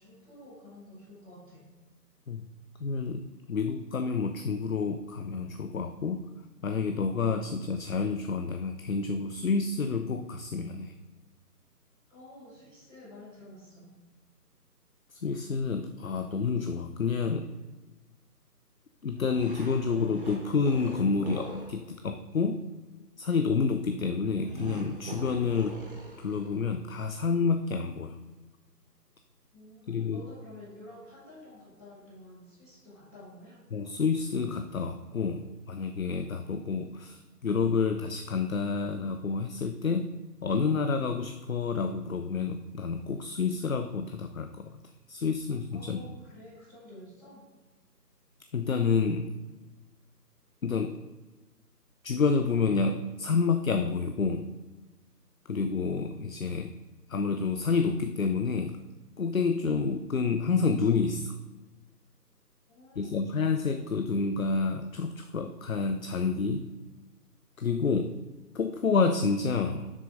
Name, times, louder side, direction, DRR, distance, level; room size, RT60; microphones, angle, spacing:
voice 1, 0.0-1.6 12.1-13.9 29.5-33.6 45.7-47.5 62.7-63.3, left 1 dB, ahead, -18 dB, 1.5 m, -50 dB
voice 2, 2.8-6.3 6.6-10.9 15.1-17.5 19.0-22.7 23.2-25.8 26.2-28.2 29.9-30.2 33.7-40.1 40.4-44.7 45.1-46.0 48.5-49.3 50.6-51.0 52.0-54.5 55.5-56.7 57.1-58.8 59.2-61.3 63.0-66.7 67.6-68.2 68.5-69.9, left 5 dB, 60° left, 7 dB, 0.5 m, -29 dB
sound 1, 19.1-21.8 24.4-26.7, right 1 dB, 35° right, 0.9 m, -43 dB
7.3 x 6.5 x 3.7 m, 1.2 s
figure-of-eight pair, 155°, 48 cm